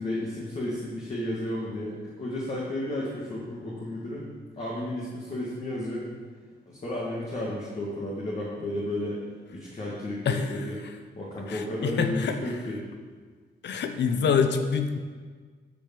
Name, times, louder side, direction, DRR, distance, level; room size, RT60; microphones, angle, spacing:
voice 1, 0.0-4.2 4.6-6.0 6.7-9.2 9.5-10.8 11.2-12.8, left 1 dB, 40° left, -5 dB, 2.3 m, -32 dB
voice 2, 11.5-12.4 13.6-15.0, left 6 dB, 75° left, 7 dB, 1.0 m, -25 dB
10.0 x 6.7 x 7.8 m, 1.5 s
wide cardioid pair, 160°, 18 cm